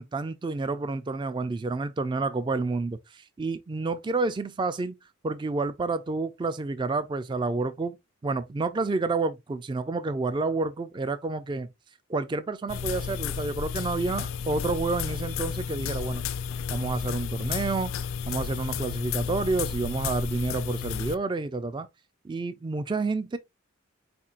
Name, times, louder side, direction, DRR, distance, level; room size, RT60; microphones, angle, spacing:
voice 1, 0.0-5.0 5.2-8.0 8.2-11.7 12.1-16.2 16.7-17.9 18.3-21.9 22.2-23.4, right 3 dB, 25° right, 0.3 m, -29 dB
sound 1, 12.7-21.1, left 7 dB, 75° left, 0.4 m, -32 dB
4.3 x 4.3 x 2.4 m
head